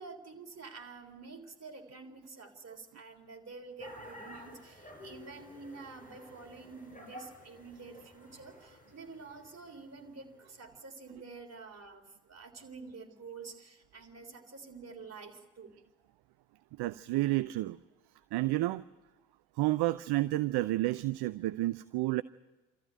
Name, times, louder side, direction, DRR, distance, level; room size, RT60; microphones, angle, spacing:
voice 1, 0.0-15.7, right 4 dB, 35° right, 3 dB, 3.7 m, -48 dB
sound 1, 3.8-10.8, left 1 dB, 15° left, 6.3 m, -52 dB
voice 2, 16.8-17.8 18.3-18.8 19.6-22.2, right 18 dB, 60° right, 15 dB, 0.6 m, -30 dB
27.0 x 14.0 x 9.2 m, 1.1 s
hypercardioid pair, 50°, 45 cm